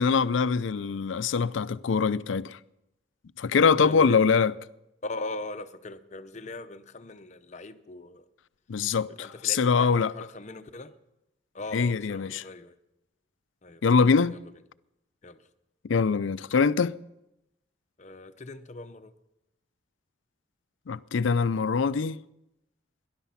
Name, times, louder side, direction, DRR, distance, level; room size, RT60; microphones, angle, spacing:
voice 1, 0.0-2.6 3.4-4.5 8.7-10.1 11.7-12.4 13.8-14.4 15.9-17.0 20.9-22.2, left 5 dB, 90° left, 0.5 m, -23 dB
voice 2, 3.8-4.2 5.0-8.3 9.1-11.0 11.5-12.8 13.6-13.8 14.3-14.5 15.2-15.4 18.0-19.1, left 2 dB, 40° left, 0.8 m, -40 dB
18.0 x 11.5 x 5.7 m
head